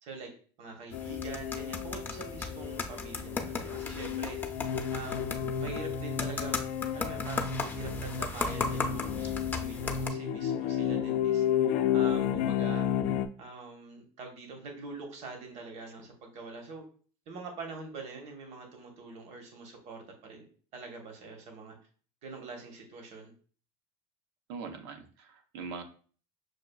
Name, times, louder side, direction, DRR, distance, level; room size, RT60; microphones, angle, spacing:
voice 1, 0.0-0.3 0.6-4.4 4.9-5.2 5.6-6.7 6.9-11.4 11.9-12.9 13.4-16.8 17.3-20.5 20.7-21.8 22.2-23.3, right 3 dB, 60° right, 3 dB, 1.1 m, -44 dB
sound 1, 0.9-13.3, left 9 dB, 70° left, 0.4 m, -32 dB
sound 2, 0.9-10.1, left 3 dB, 15° left, 0.5 m, -37 dB
voice 2, 24.5-25.8, right 5 dB, 90° right, 6 dB, 0.7 m, -41 dB
6.4 x 2.4 x 2.3 m, 0.42 s
cardioid pair, 120°, 13 cm